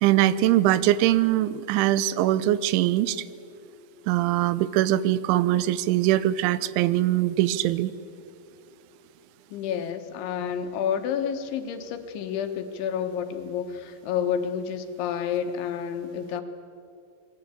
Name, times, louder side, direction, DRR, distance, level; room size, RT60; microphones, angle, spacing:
voice 1, 0.0-3.2 4.1-7.9, right 14 dB, 85° right, 16 dB, 3.1 m, -22 dB
voice 2, 9.5-16.4, left 8 dB, 80° left, 7 dB, 3.7 m, -29 dB
27.0 x 21.0 x 8.3 m, 2.6 s
omnidirectional pair, 5.4 m